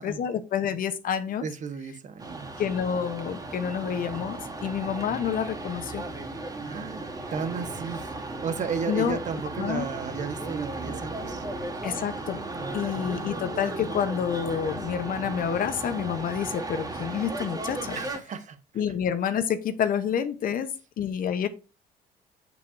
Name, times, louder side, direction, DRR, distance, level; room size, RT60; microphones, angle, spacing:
voice 1, 0.0-1.4 2.6-6.0 8.9-9.2 9.6-9.9 11.8-12.4 12.7-18.0 18.8-21.5, left 8 dB, 55° left, 1.1 m, -28 dB
voice 2, 1.4-2.6 6.6-11.5 12.6-13.5 17.9-18.8, right 6 dB, 45° right, 1.5 m, -35 dB
sound 1, 2.2-18.2, right 2 dB, 20° right, 2.6 m, -36 dB
8.4 x 7.6 x 2.8 m
cardioid pair, 110°, 17 cm